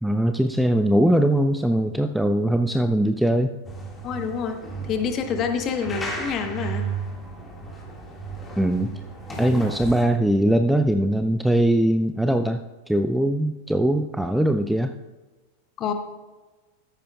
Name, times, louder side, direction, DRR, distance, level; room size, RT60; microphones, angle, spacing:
voice 1, 0.0-3.5 8.6-8.9 9.4-12.6 12.9-14.9, right 1 dB, ahead, 7 dB, 0.3 m, -21 dB
sound 1, 3.6-10.0, right 3 dB, 15° left, 1.8 m, -34 dB
voice 2, 4.0-4.6 4.9-6.9 9.4-9.6 15.8-15.9, left 6 dB, 30° left, 7 dB, 1.1 m, -27 dB
13.5 x 9.9 x 2.3 m, 1.2 s
figure-of-eight pair, 90°, 0 cm